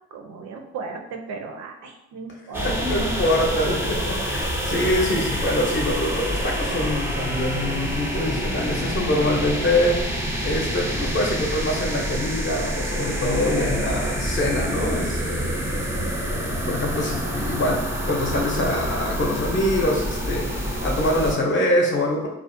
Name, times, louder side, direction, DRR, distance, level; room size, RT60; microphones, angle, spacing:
voice 1, 0.1-2.7, right 4 dB, 65° right, 4 dB, 0.5 m, -36 dB
sound 1, 2.5-21.3, equal, 10° right, 0.4 m, -27 dB
voice 2, 2.6-10.1 10.4-15.7 16.0-22.3, left 1 dB, 40° left, 0 dB, 0.6 m, -24 dB
2.4 x 2.0 x 2.5 m, 0.90 s
cardioid pair, 90°, 30 cm